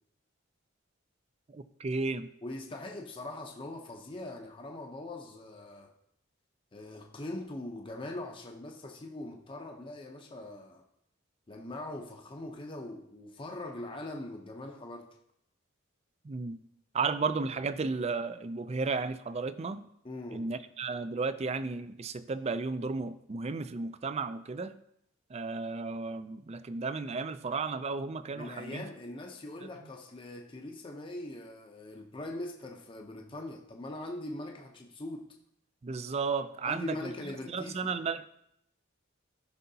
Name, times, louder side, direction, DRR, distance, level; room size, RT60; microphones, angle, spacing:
voice 1, 1.5-2.3 16.2-16.6 16.9-19.9 20.3-24.7 25.3-28.8 29.6-29.7 35.8-37.1 37.5-38.2, right 4 dB, 30° right, 0.4 m, -34 dB
voice 2, 2.4-5.9 6.7-10.8 11.5-15.1 20.0-20.5 28.4-35.3 36.6-37.9, left 1 dB, 25° left, 0.7 m, -41 dB
13.5 x 5.6 x 2.8 m
head